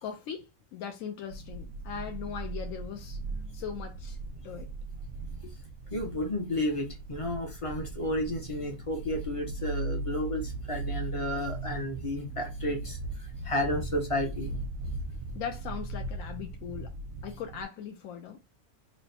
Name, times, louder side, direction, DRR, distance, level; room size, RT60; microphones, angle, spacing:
voice 1, 0.0-3.2 3.5-4.2 4.4-4.7 5.4-5.5 15.3-16.9 17.2-18.4, left 8 dB, 90° left, 1.0 m, -39 dB
sound 1, 1.3-17.6, right 2 dB, 90° right, 1.0 m, -38 dB
voice 2, 5.9-14.5, left 1 dB, 35° left, 0.6 m, -32 dB
3.2 x 2.1 x 4.0 m
omnidirectional pair, 1.3 m